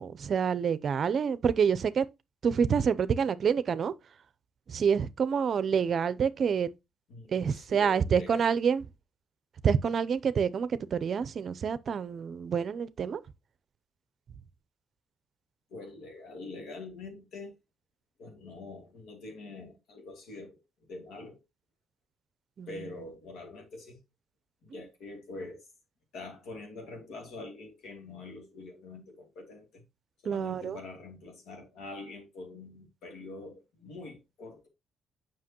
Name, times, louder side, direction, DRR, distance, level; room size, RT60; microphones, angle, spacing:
voice 1, 0.0-2.1 2.4-4.2 4.7-6.7 7.3-8.8 9.6-13.2 22.6-22.9 24.7-24.8 30.2-30.8, right 7 dB, 55° right, 0.5 m, -27 dB
voice 2, 7.1-8.4 15.7-17.5 18.2-21.4 22.7-24.0 24.6-25.7 26.1-29.8 30.2-34.7, left 3 dB, 80° left, 2.8 m, -45 dB
7.5 x 5.9 x 2.9 m
cardioid pair, 90°, 0 cm